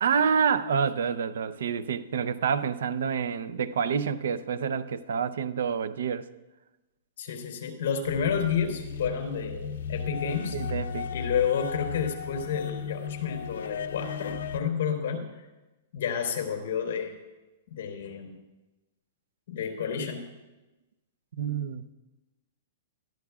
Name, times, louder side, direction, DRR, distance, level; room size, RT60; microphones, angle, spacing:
voice 1, 0.0-6.3 10.1-11.1 21.4-21.9, right 6 dB, 70° right, 0.6 m, -28 dB
voice 2, 7.2-10.6 11.1-15.3 15.9-17.1 17.7-18.4 19.5-20.2, left 7 dB, 55° left, 3.5 m, -30 dB
sound 1, 8.0-14.6, left 6 dB, 85° left, 0.8 m, -35 dB
21.0 x 13.5 x 2.4 m
hypercardioid pair, 180°, 0 cm